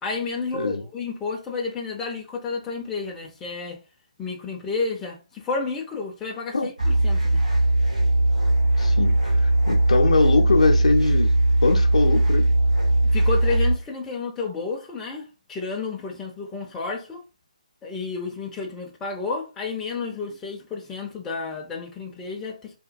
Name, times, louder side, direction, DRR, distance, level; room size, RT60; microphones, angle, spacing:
voice 1, 0.0-3.8 4.2-7.4 13.0-17.2 17.8-22.8, left 4 dB, 10° left, 0.5 m, -31 dB
sound 1, 6.8-13.7, right 1 dB, 85° right, 1.3 m, -19 dB
voice 2, 8.8-11.4 11.6-12.4, left 3 dB, 60° left, 0.6 m, -22 dB
2.9 x 2.2 x 2.5 m
figure-of-eight pair, 140°, 4 cm